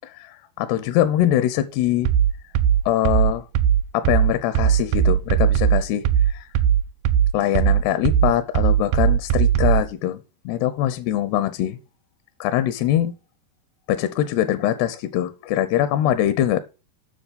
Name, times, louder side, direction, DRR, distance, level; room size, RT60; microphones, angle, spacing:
voice 1, 0.0-2.1 2.9-3.5 3.9-6.5 7.3-10.2 10.5-11.8 12.4-13.1 13.9-16.6, left 12 dB, 85° left, 2.8 m, -22 dB
sound 1, 2.1-9.9, right 9 dB, 90° right, 1.9 m, -19 dB
9.7 x 6.2 x 5.2 m
omnidirectional pair, 4.7 m